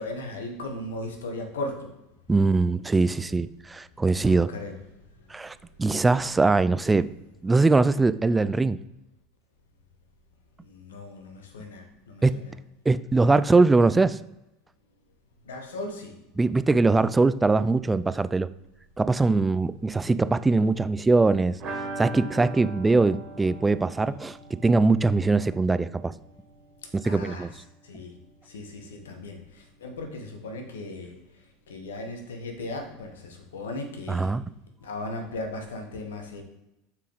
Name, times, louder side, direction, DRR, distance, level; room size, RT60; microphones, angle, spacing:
voice 1, 0.0-1.9 4.1-4.8 10.6-12.5 15.5-16.2 27.0-27.5 27.8-28.1 28.5-31.2 31.7-34.3 34.8-36.4, left 2 dB, 80° left, 4 dB, 1.2 m, -37 dB
voice 2, 2.3-4.5 5.3-7.1 7.4-8.8 12.2-12.3 12.9-14.2 16.4-18.5 19.0-21.6 22.0-26.1 27.0-27.5 34.1-34.4, right 3 dB, 15° right, 16 dB, 0.3 m, -22 dB
sound 1, 21.6-27.2 27.5-27.6 27.8-27.9, right 2 dB, 40° right, 1.9 m, -40 dB
7.0 x 4.6 x 3.8 m, 0.90 s
hypercardioid pair, 80°, 0 cm